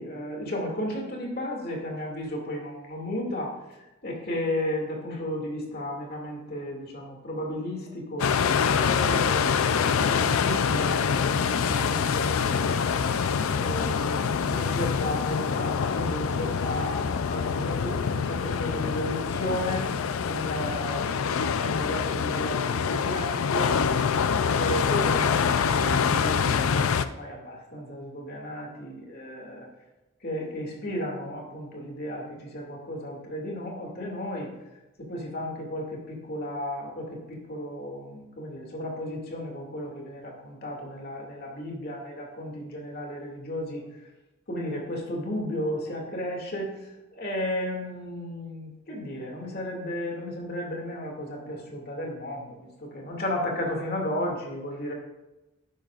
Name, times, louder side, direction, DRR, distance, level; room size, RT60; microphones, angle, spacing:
voice 1, 0.0-3.6 4.0-8.3 8.8-13.0 13.6-19.9 20.3-23.8 24.5-29.7 30.2-34.5 35.0-43.8 44.5-46.7 47.1-54.9, left 1 dB, 45° left, 0 dB, 2.3 m, -34 dB
sound 1, 8.2-27.0, left 6 dB, 80° left, 0.5 m, -25 dB
11.5 x 10.5 x 2.5 m, 1.0 s
head